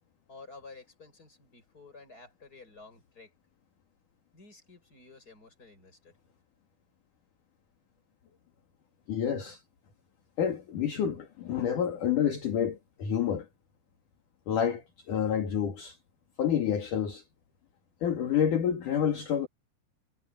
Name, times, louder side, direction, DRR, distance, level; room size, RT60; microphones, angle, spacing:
voice 1, 0.3-3.3 4.3-6.1, left 3 dB, 15° left, 7.2 m, -52 dB
voice 2, 9.1-9.6 10.4-13.5 14.5-16.0 16.4-17.2 18.0-19.5, left 8 dB, 50° left, 3.1 m, -28 dB
omnidirectional pair, 5.7 m